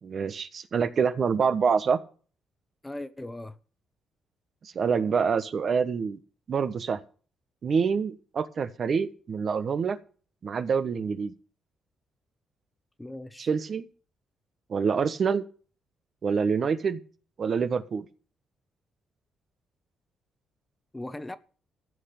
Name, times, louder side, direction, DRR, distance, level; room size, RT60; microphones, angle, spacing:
voice 1, 0.0-2.0 4.6-6.2 6.5-7.0 7.6-10.0 10.4-11.3 13.4-13.9 14.7-15.4 16.2-17.0 17.4-18.1, right 6 dB, 50° right, 1.2 m, -26 dB
voice 2, 2.8-3.6 13.0-13.5 20.9-21.4, left 1 dB, 10° left, 1.1 m, -38 dB
14.5 x 5.9 x 8.3 m
cardioid pair, 90°, 0 cm